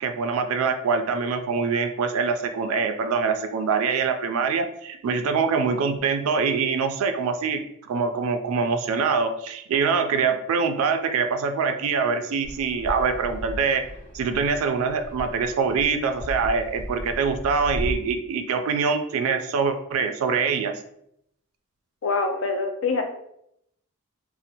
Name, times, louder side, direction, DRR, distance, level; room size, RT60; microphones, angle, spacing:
voice 1, 0.0-13.8 14.1-20.7, right 5 dB, 85° right, 8 dB, 0.3 m, -24 dB
Fixed-wing aircraft airplane, 12.4-17.9, equal, 50° left, 1.0 m, -36 dB
voice 2, 22.0-23.0, left 4 dB, 65° left, 4 dB, 0.4 m, -25 dB
2.8 x 2.0 x 2.6 m, 0.75 s
head